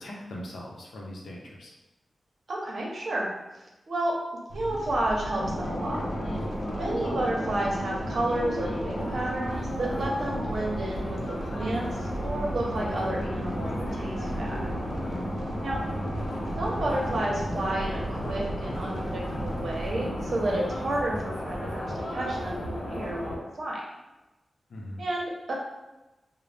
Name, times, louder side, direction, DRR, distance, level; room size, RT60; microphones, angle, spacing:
voice 1, 0.0-1.7 24.7-25.0, left 1 dB, 90° left, -2 dB, 0.7 m, -40 dB
voice 2, 2.5-3.3 3.9-4.2 4.5-6.0 6.7-11.2 11.5-14.7 15.6-15.8 16.6-23.8 25.0-25.5, right 1 dB, 55° right, -2 dB, 0.8 m, -31 dB
sound 1, 4.5-19.9, right 1 dB, 85° right, 0.6 m, -38 dB
sound 2, 5.4-23.4, equal, 55° left, 0.8 m, -33 dB
3.9 x 2.1 x 3.3 m, 1.0 s
wide cardioid pair, 170°, 0 cm